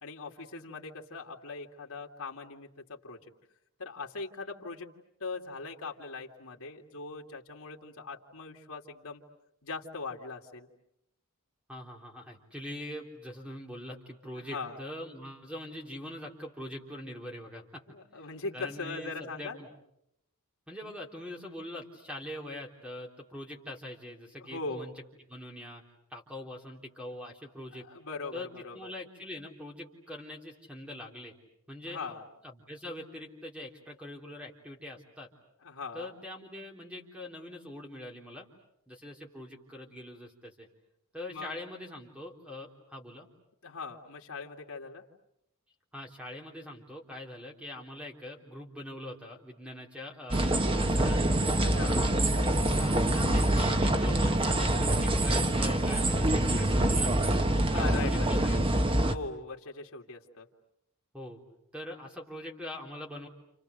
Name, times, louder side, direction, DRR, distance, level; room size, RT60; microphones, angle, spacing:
voice 1, 0.0-3.3 3.8-4.9 5.2-9.2 9.6-10.7 14.3-14.8 17.9-19.6 24.4-24.9 27.7-28.9 31.9-32.2 35.6-36.2 41.3-41.5 43.6-45.0 51.6-52.0 57.7-58.6 58.9-60.5, left 3 dB, 75° left, 1 dB, 2.5 m, -40 dB
voice 2, 11.7-17.8 18.5-19.7 20.7-24.9 25.3-25.8 26.1-27.9 28.3-31.3 31.7-32.1 32.4-35.3 35.9-38.5 38.9-40.7 41.1-43.3 45.9-51.4 52.8-57.4 57.9-58.7 61.1-61.4 61.7-63.3, left 1 dB, 5° right, 0 dB, 3.6 m, -43 dB
sound 1, 50.3-59.1, right 1 dB, 25° right, 1.1 m, -25 dB
29.5 x 29.5 x 6.6 m, 0.80 s
head